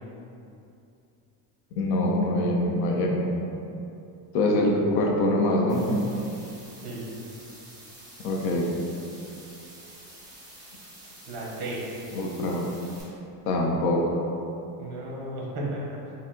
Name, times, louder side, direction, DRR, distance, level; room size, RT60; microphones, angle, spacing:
voice 1, 1.8-3.2 4.3-5.9 8.2-8.7 12.2-12.7 13.4-14.2, left 1 dB, 55° left, -1 dB, 0.6 m, -24 dB
sound 1, 5.7-13.0, right 1 dB, 10° right, 0.6 m, -48 dB
voice 2, 11.3-11.8 14.8-16.0, right 1 dB, 55° right, -3 dB, 0.9 m, -34 dB
4.3 x 2.0 x 3.8 m, 2.7 s
cardioid pair, 180°, 45 cm